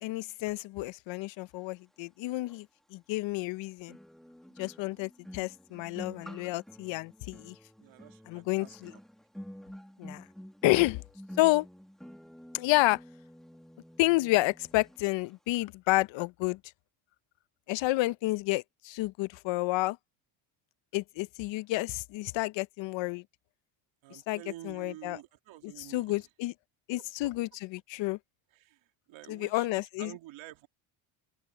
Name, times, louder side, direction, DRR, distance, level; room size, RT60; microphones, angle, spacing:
voice 1, 0.0-2.7 2.9-4.0 4.6-7.5 8.3-8.9 10.0-10.2 10.6-11.0 11.4-11.7 12.5-13.0 14.0-16.6 17.7-20.0 20.9-23.2 24.1-25.2 25.6-26.5 26.9-28.2 29.3-30.1, left 20 dB, 60° left, 0.7 m, -30 dB
sound 1, 2.5-2.6 3.9-15.0 15.2-15.5, equal, ahead, 1.5 m, -49 dB
voice 2, 7.8-9.0 24.0-26.2 28.5-28.8 29.1-30.7, right 16 dB, 65° right, 2.4 m, -49 dB
open air
cardioid pair, 120°, 50 cm